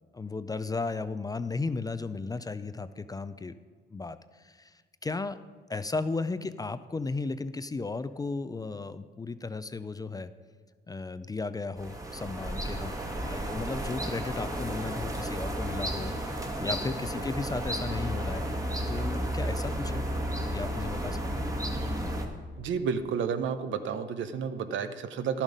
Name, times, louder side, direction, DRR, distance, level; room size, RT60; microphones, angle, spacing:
voice 1, 0.1-3.5 3.9-5.4 5.7-10.3 10.9-13.0 13.2-18.4 18.9-20.0 20.5-21.4, left 3 dB, 20° left, 13 dB, 0.4 m, -35 dB
sound 1, 11.8-22.3, right 1 dB, 15° right, 1.3 m, -33 dB
voice 2, 22.6-25.4, right 6 dB, 70° right, 10 dB, 0.7 m, -31 dB
11.5 x 7.2 x 5.2 m, 1.5 s
cardioid pair, 90°, 20 cm